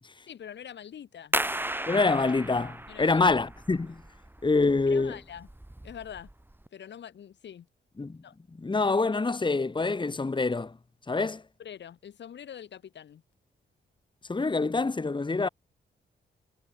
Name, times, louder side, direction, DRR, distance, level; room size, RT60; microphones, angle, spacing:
voice 1, 0.3-1.3 2.9-3.2 4.9-5.5 5.8-6.3 6.7-7.7 8.2-8.3 11.6-13.2, left 9 dB, 70° left, 2.3 m, -44 dB
sound 1, 1.3-6.7, right 1 dB, 10° right, 3.1 m, -35 dB
voice 2, 1.9-4.0 4.4-5.2 8.0-8.2 8.6-10.7 11.1-11.4 14.3-15.5, left 3 dB, 25° left, 1.6 m, -26 dB
cardioid pair, 65°, 19 cm